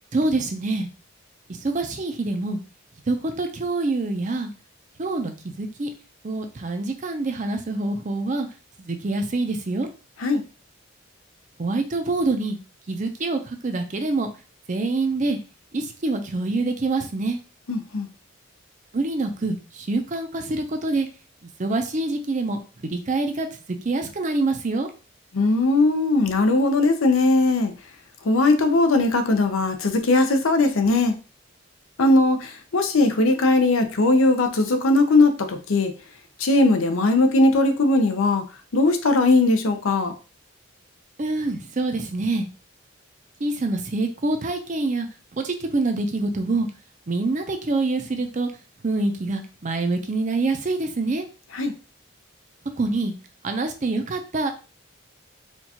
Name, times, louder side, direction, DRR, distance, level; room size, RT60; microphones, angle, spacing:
voice 1, 0.1-0.9 1.5-2.6 3.1-4.5 5.0-5.9 6.2-8.5 8.8-9.9 11.6-12.6 12.9-14.3 14.7-15.4 15.7-17.4 18.9-21.1 21.6-24.9 41.2-42.5 43.4-45.1 45.3-46.7 47.1-48.5 48.8-51.3 52.8-53.1 53.4-54.5, right 2 dB, 35° right, 6 dB, 0.5 m, -25 dB
voice 2, 17.7-18.1 25.3-27.7 28.2-31.2 32.0-35.9 36.4-38.4 38.7-40.1 51.5-51.7, left 2 dB, 80° left, 7 dB, 0.6 m, -19 dB
4.4 x 2.4 x 2.8 m, 0.33 s
head